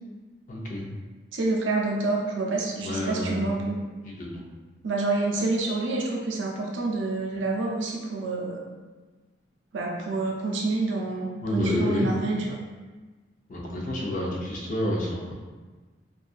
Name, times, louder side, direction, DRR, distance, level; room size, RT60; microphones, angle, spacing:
voice 1, 0.5-0.9 2.8-3.5 4.0-4.4 11.4-12.1 13.5-15.3, left 1 dB, 45° left, -2 dB, 0.5 m, -29 dB
voice 2, 1.3-3.8 4.8-8.6 9.7-12.6, right 2 dB, 80° right, -1 dB, 0.5 m, -28 dB
2.6 x 2.3 x 2.4 m, 1.3 s
head